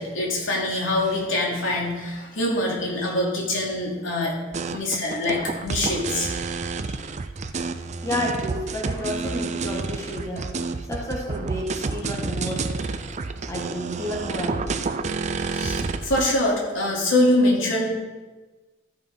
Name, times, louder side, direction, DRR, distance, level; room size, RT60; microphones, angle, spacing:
voice 1, 0.0-4.3 4.7-6.6 6.9-7.1 15.3-17.9, left 1 dB, 90° left, -3 dB, 2.8 m, -24 dB
sound 1, 4.5-16.3, right 4 dB, 35° right, 0.5 m, -29 dB
voice 2, 8.0-10.5 10.8-14.9 15.3-15.4, left 1 dB, 15° left, -2 dB, 1.8 m, -31 dB
13.0 x 5.5 x 5.4 m, 1.2 s
head